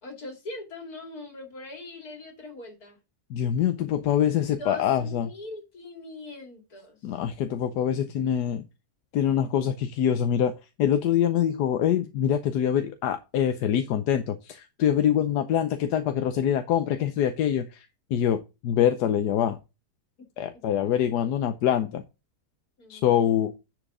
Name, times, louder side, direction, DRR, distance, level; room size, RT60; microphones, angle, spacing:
voice 1, 0.0-3.0 4.4-7.2 20.5-20.6 22.8-23.5, left 2 dB, 65° left, 3.1 m, -42 dB
voice 2, 3.3-5.3 7.0-8.6 9.1-10.5 10.8-19.6 20.4-22.0 22.9-23.5, left 9 dB, 85° left, 1.3 m, -24 dB
9.9 x 5.1 x 3.7 m
omnidirectional pair, 1.7 m